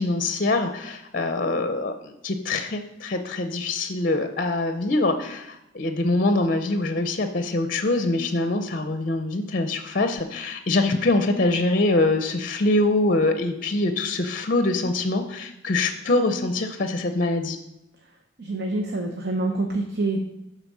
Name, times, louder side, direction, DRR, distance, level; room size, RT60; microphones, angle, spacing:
voice 1, 0.0-17.6, left 2 dB, 45° left, 8 dB, 0.6 m, -24 dB
voice 2, 18.4-20.2, right 2 dB, 55° right, 2 dB, 0.9 m, -26 dB
10.5 x 4.1 x 6.1 m, 0.89 s
head